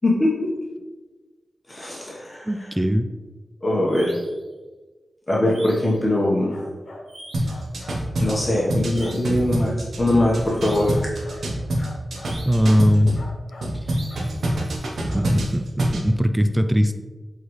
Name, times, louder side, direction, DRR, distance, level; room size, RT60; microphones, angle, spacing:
voice 1, 1.7-2.7 3.6-4.1 5.3-6.5 8.2-10.9 11.8-11.9, left 1 dB, 20° left, -5 dB, 1.2 m, -22 dB
voice 2, 2.5-3.1 12.5-13.1 15.1-16.9, equal, 10° right, 8 dB, 0.3 m, -19 dB
sound 1, 3.9-4.4 5.5-6.0 7.1-7.6 8.9-9.5 10.5-11.1 12.2-12.8 13.9-14.4, right 1 dB, 50° right, 1.6 m, -43 dB
sound 2, 6.5-7.0 7.4-8.4 9.0-9.2 10.9-11.4 11.8-12.4 13.1-13.7 14.1-14.7 15.1-15.3, left 2 dB, 60° left, 1.2 m, -42 dB
sound 3, 7.3-13.2 13.6-16.1, right 1 dB, 80° right, 1.0 m, -26 dB
8.0 x 3.9 x 3.2 m, 1.3 s
wide cardioid pair, 110°, 0 cm